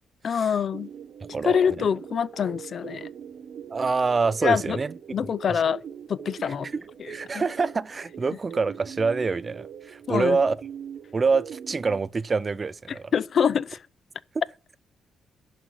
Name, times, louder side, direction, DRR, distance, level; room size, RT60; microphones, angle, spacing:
voice 1, 0.2-0.9 1.4-3.1 4.4-4.8 5.1-5.8 6.1-6.7 7.0-7.4 10.1-10.4 12.9-13.8, left 7 dB, 55° left, 0.4 m, -25 dB
sound 1, 0.7-12.0, right 8 dB, 70° right, 0.9 m, -42 dB
voice 2, 3.7-4.9 5.5-5.6 6.7-10.6 11.1-13.0, right 4 dB, 35° right, 0.4 m, -26 dB
11.0 x 4.1 x 7.8 m
cardioid pair, 95°, 0 cm